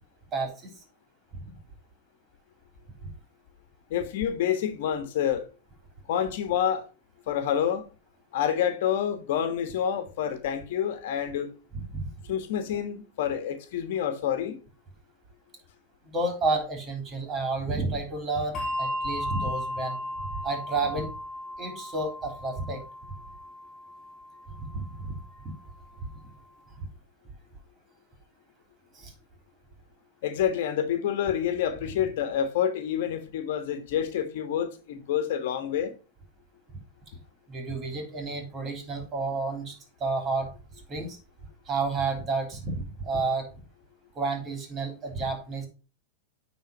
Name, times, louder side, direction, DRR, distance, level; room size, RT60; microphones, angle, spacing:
voice 1, 0.3-0.7 1.4-1.5 11.7-12.1 16.0-20.0 20.4-21.1 21.6-22.8 24.5-25.1 25.4-25.5 26.0-26.1 26.8-26.9 28.9-29.1 37.5-39.7 40.0-40.5 40.9-41.2 41.7-43.5 44.2-45.7, right 3 dB, 30° right, 3.4 m, -30 dB
voice 2, 3.9-5.5 6.1-6.8 7.3-7.9 8.3-11.5 12.3-14.6 30.2-35.9, left 9 dB, 65° left, 1.4 m, -28 dB
Bell, 18.5-25.4, left 1 dB, 30° left, 2.0 m, -36 dB
9.5 x 4.0 x 5.4 m
hypercardioid pair, 110°, 0 cm